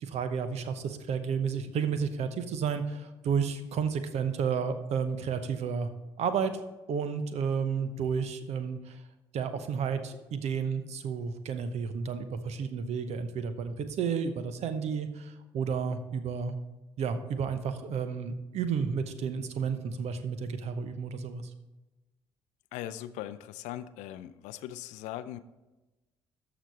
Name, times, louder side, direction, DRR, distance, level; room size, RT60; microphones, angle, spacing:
voice 1, 0.0-5.9 6.2-6.5 6.9-9.0 9.3-16.6 17.0-21.4, right 6 dB, 55° right, 10 dB, 0.9 m, -31 dB
voice 2, 22.7-25.4, left 13 dB, 65° left, 13 dB, 0.5 m, -40 dB
13.5 x 5.1 x 4.1 m, 1.1 s
figure-of-eight pair, 45°, 13 cm